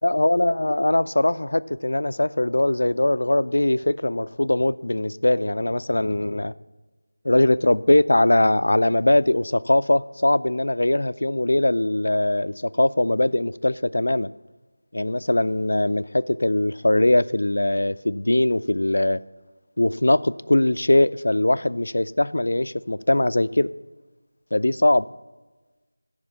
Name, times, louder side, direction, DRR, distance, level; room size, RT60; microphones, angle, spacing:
voice 1, 0.0-6.5 7.2-14.3 14.9-19.2 19.8-23.7 24.5-25.1, left 1 dB, 75° left, 0.3 m, -21 dB
11.0 x 4.9 x 8.2 m
figure-of-eight pair, 175°, 0 cm